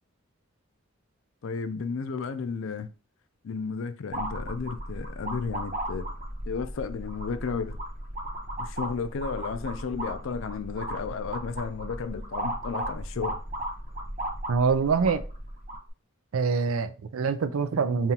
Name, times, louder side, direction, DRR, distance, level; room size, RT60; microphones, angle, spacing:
voice 1, 1.4-2.9 3.4-6.1 6.5-7.8 8.6-13.4, left 5 dB, 65° left, 0.4 m, -33 dB
sound 1, 4.1-15.9, right 1 dB, 35° right, 0.9 m, -35 dB
voice 2, 14.5-15.2 16.3-18.1, right 5 dB, 80° right, 0.4 m, -25 dB
5.4 x 2.5 x 2.8 m
head